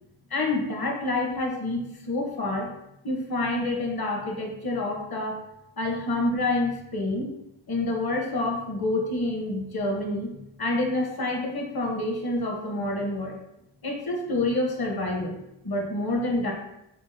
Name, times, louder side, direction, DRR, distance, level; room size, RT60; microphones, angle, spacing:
voice 1, 0.3-2.7 3.0-5.4 5.8-7.3 7.7-13.4 13.8-15.4 15.6-16.5, left 2 dB, 50° left, 1 dB, 1.1 m, -28 dB
6.0 x 2.1 x 3.4 m, 0.83 s
wide cardioid pair, 100°, 49 cm